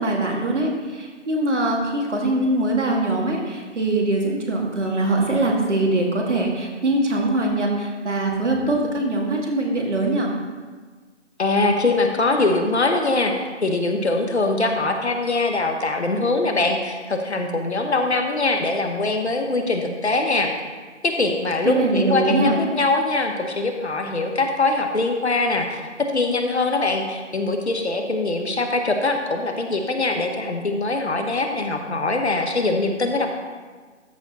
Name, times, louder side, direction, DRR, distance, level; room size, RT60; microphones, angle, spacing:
voice 1, 0.0-10.3 21.6-22.6, right 2 dB, 70° right, 0 dB, 2.1 m, -22 dB
voice 2, 11.4-13.3 13.6-20.5 21.0-33.3, left 2 dB, 60° left, 4 dB, 1.2 m, -22 dB
13.0 x 4.7 x 4.2 m, 1.4 s
figure-of-eight pair, 170°, 37 cm